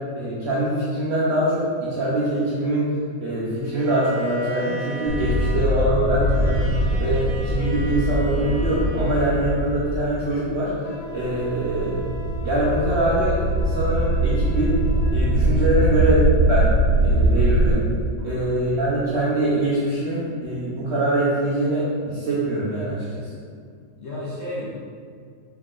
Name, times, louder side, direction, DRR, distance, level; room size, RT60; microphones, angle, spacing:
voice 1, 0.2-2.9 3.2-6.7 7.0-12.0 12.4-14.8 15.1-16.7 17.0-17.8 18.2-23.3, right 1 dB, 70° right, -7 dB, 0.6 m, -23 dB
Bowed string instrument, 3.6-9.9, equal, 30° right, 0.9 m, -37 dB
sound 1, 5.1-10.5 11.0-17.7, right 1 dB, 55° right, 1.5 m, -22 dB
Wind instrument woodwind instrument, 10.8-15.3, left 1 dB, 75° left, 1.4 m, -40 dB
voice 2, 18.2-18.6 24.0-24.8, left 1 dB, 55° left, -7 dB, 0.9 m, -33 dB
4.7 x 3.6 x 2.4 m, 2.1 s
omnidirectional pair, 2.0 m